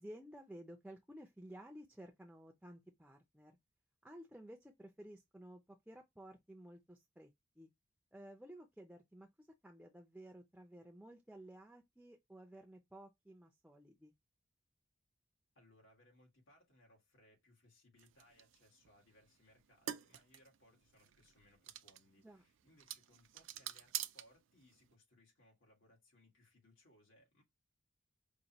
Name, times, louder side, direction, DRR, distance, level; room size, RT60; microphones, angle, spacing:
voice 1, 0.0-3.5 4.0-7.7 8.1-14.1 22.2-22.4, right 1 dB, 5° right, 0.4 m, -55 dB
voice 2, 15.6-27.4, left 1 dB, 85° left, 1.9 m, -68 dB
sound 1, 18.0-24.9, right 11 dB, 80° right, 0.4 m, -48 dB
5.1 x 2.2 x 2.8 m
head